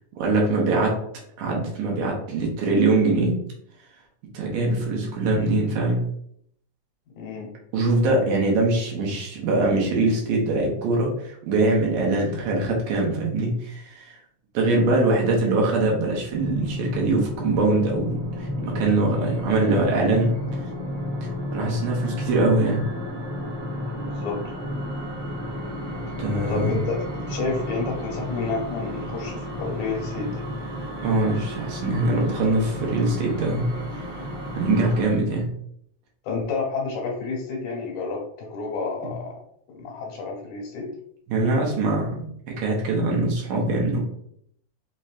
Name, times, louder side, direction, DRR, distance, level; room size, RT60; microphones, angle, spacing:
voice 1, 0.2-0.9 1.4-3.3 4.3-6.1 7.7-14.2 14.5-20.6 21.5-22.8 26.2-26.7 31.0-33.7 34.1-34.3 34.5-35.5 41.3-44.0, right 2 dB, 75° right, -1 dB, 2.0 m, -23 dB
voice 2, 7.2-7.5 23.9-24.4 26.5-27.0 27.3-30.4 36.2-39.3 39.7-40.9, left 4 dB, 75° left, -2 dB, 2.1 m, -30 dB
sound 1, 16.3-35.0, left 1 dB, 55° right, 1.4 m, -32 dB
5.4 x 2.1 x 2.4 m, 0.69 s
omnidirectional pair, 3.5 m